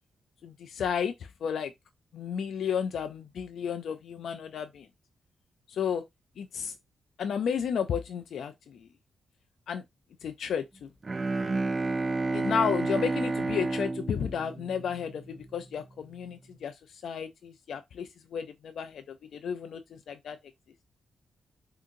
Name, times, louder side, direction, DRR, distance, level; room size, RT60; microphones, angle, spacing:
voice 1, 0.4-1.7 2.1-4.9 5.7-6.0 6.4-6.7 7.2-8.9 9.7-9.8 10.2-10.9 12.3-20.4, left 7 dB, 80° left, 0.3 m, -33 dB
Bowed string instrument, 11.0-15.3, right 3 dB, 35° right, 0.4 m, -30 dB
3.6 x 2.8 x 2.5 m
cardioid pair, 70°, 0 cm